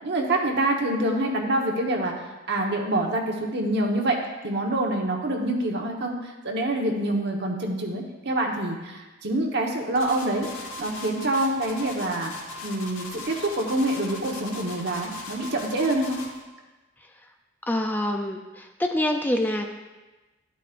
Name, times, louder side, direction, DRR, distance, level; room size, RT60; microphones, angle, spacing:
voice 1, 0.0-2.1 2.5-4.2 4.4-10.5 10.8-12.3 12.6-16.2, right 1 dB, 55° right, 1 dB, 1.2 m, -26 dB
sound 1, 10.0-16.4, left 2 dB, 80° left, 1.9 m, -39 dB
voice 2, 17.7-19.7, left 1 dB, 10° left, 4 dB, 0.4 m, -26 dB
12.0 x 8.3 x 2.5 m, 1.2 s
head